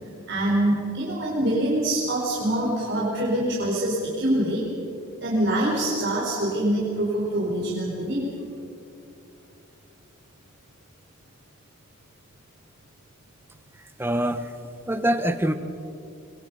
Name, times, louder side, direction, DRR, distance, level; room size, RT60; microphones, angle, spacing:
voice 1, 0.2-4.6 5.2-8.2, right 1 dB, 55° right, -5 dB, 4.5 m, -24 dB
voice 2, 14.0-14.4 14.9-15.5, right 1 dB, 10° right, 9 dB, 1.0 m, -23 dB
25.0 x 24.0 x 5.6 m, 2.6 s
head